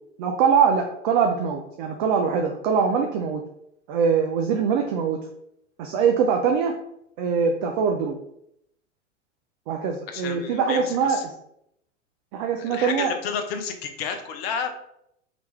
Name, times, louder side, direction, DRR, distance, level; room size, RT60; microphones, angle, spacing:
voice 1, 0.2-3.4 3.9-5.2 5.8-6.7 7.2-8.2 9.7-11.3 12.3-13.1, right 6 dB, 45° right, 3 dB, 0.5 m, -23 dB
voice 2, 10.1-11.2 12.6-14.8, left 6 dB, 55° left, 6 dB, 0.7 m, -31 dB
3.0 x 2.9 x 3.4 m, 0.76 s
figure-of-eight pair, 95°, 37 cm